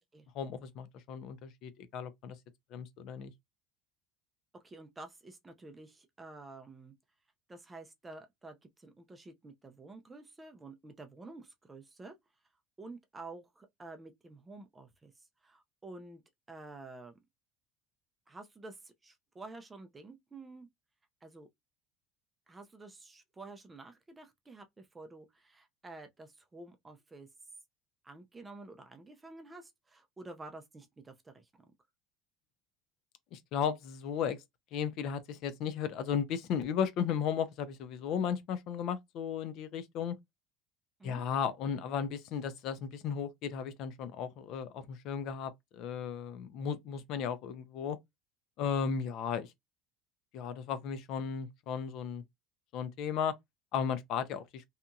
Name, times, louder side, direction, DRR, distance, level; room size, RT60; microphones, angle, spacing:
voice 1, 0.4-2.4 2.7-3.3 33.3-34.4 34.7-40.2 41.0-48.0 48.6-49.5 50.3-52.2 52.7-53.3 53.7-54.6, left 7 dB, 50° left, 0.4 m, -35 dB
voice 2, 4.5-6.9 7.5-12.2 12.8-15.1 15.4-16.2 16.5-17.2 18.3-20.7 21.2-21.5 22.5-27.3 28.0-31.5 41.0-41.2, right 3 dB, 10° right, 0.4 m, -50 dB
2.8 x 2.5 x 2.2 m
cardioid pair, 160°, 0 cm